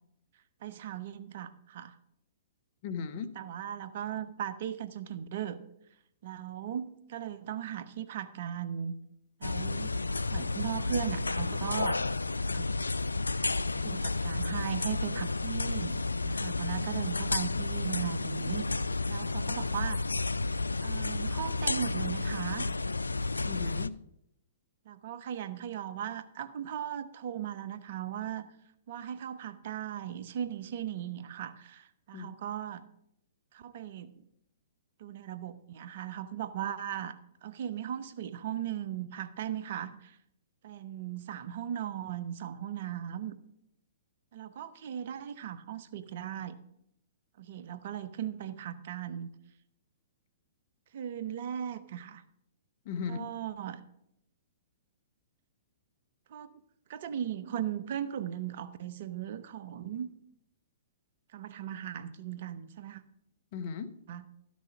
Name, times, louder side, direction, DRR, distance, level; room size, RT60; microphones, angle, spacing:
voice 1, 0.6-2.0 3.4-5.6 6.2-9.0 9.4-10.0 10.3-12.0 12.5-12.7 13.7-18.7 19.1-20.0 20.8-22.7 24.9-28.5 28.9-32.8 33.5-34.2 35.0-37.1 37.4-40.2 40.6-43.4 44.3-46.6 47.4-49.3 50.9-52.2 53.1-53.8 56.3-56.5 56.9-60.1 61.3-63.0 64.1-64.3, right 10 dB, 55° right, 13 dB, 0.8 m, -38 dB
voice 2, 2.8-3.3 23.4-24.0 32.1-32.3 52.8-53.3 63.5-63.9, left 6 dB, 45° left, 12 dB, 0.9 m, -36 dB
sound 1, 9.4-23.9, left 3 dB, 90° left, 0.3 m, -31 dB
12.5 x 6.3 x 5.9 m, 0.78 s
figure-of-eight pair, 120°, 0 cm